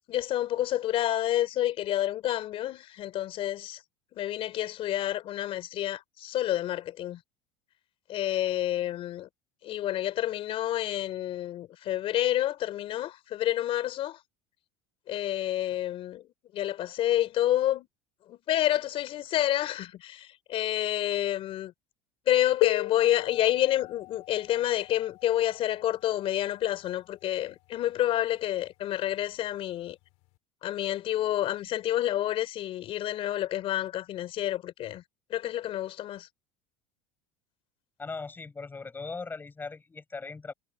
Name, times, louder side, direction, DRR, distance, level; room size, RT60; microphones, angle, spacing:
voice 1, 0.1-3.8 4.1-7.2 8.1-9.3 9.6-14.2 15.1-16.3 16.5-17.9 18.3-21.7 22.3-30.0 30.6-35.0 35.3-36.3, left 13 dB, 45° left, 4.0 m, -29 dB
sound 1, 22.6-28.0 29.1-29.2 30.0-30.2, left 26 dB, 70° left, 3.9 m, -35 dB
voice 2, 38.0-40.5, left 4 dB, 15° left, 7.2 m, -39 dB
supercardioid pair, 135°, 13 cm